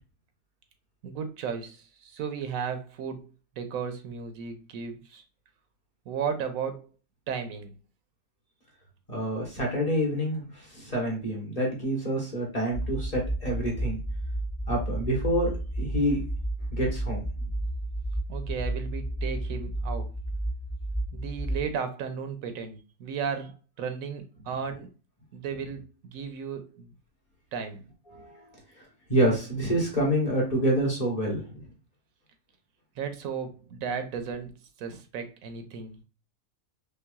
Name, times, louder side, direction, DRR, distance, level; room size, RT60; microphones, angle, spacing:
voice 1, 1.0-5.2 6.1-6.9 7.3-7.7 18.3-20.1 21.1-24.9 25.3-26.9 27.5-27.8 33.0-34.5 34.8-36.0, right 6 dB, 80° right, 1.0 m, -35 dB
voice 2, 9.1-14.0 14.7-16.2 16.7-17.5 28.1-28.5 29.1-31.7, equal, 30° left, 1.2 m, -27 dB
sound 1, 12.7-21.6, right 1 dB, 45° left, 0.8 m, -32 dB
5.3 x 2.3 x 2.3 m
omnidirectional pair, 1.5 m